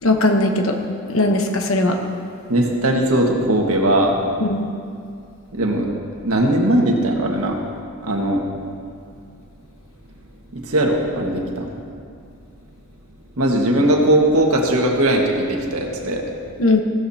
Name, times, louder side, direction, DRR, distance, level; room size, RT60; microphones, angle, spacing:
voice 1, 0.0-0.8 1.1-2.0 4.4-4.6 16.6-16.8, left 2 dB, 70° left, 3 dB, 1.1 m, -18 dB
voice 2, 2.5-4.2 5.5-5.9 6.2-7.6 8.0-8.4 10.5-11.7 13.4-16.2, right 1 dB, 85° right, 0 dB, 1.7 m, -19 dB
15.5 x 13.5 x 2.9 m, 2.3 s
head